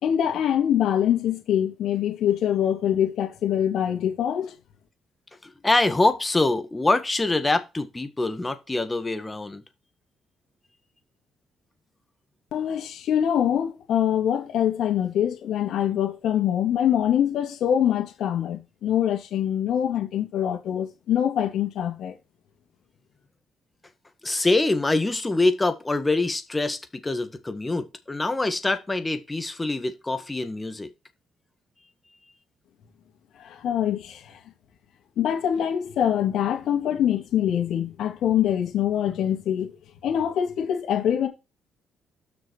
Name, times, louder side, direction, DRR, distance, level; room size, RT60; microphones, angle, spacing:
voice 1, 0.0-4.6 12.5-22.1 33.4-34.4 35.2-39.7 40.0-41.3, left 10 dB, 75° left, 2.4 m, -24 dB
voice 2, 5.4-9.6 24.2-30.9, left 2 dB, 20° left, 1.6 m, -24 dB
7.2 x 6.2 x 4.6 m
cardioid pair, 90°, 0 cm